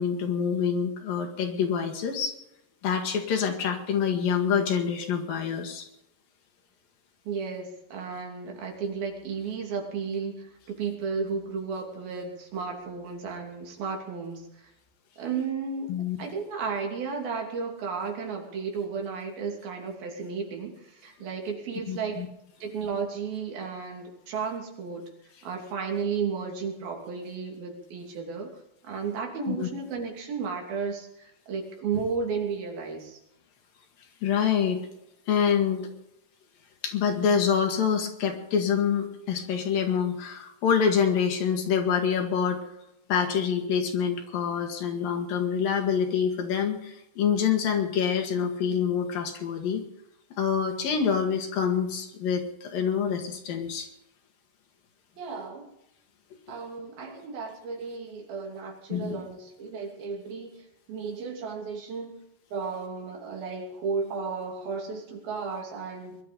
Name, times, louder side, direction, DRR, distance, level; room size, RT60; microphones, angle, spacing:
voice 1, 0.0-2.3 2.8-5.9 15.9-16.2 21.9-22.3 29.5-29.7 34.2-34.8 35.3-35.9 36.8-42.6 43.1-49.8 50.4-53.9 58.9-59.2, left 7 dB, 70° left, 4 dB, 3.6 m, -26 dB
voice 2, 7.3-10.5 10.8-14.4 15.2-22.3 22.6-25.1 25.4-33.2 55.2-55.7 56.5-60.5 60.9-62.2 62.5-66.2, right 5 dB, 75° right, 1 dB, 4.7 m, -33 dB
21.5 x 12.0 x 5.3 m, 0.82 s
omnidirectional pair, 4.3 m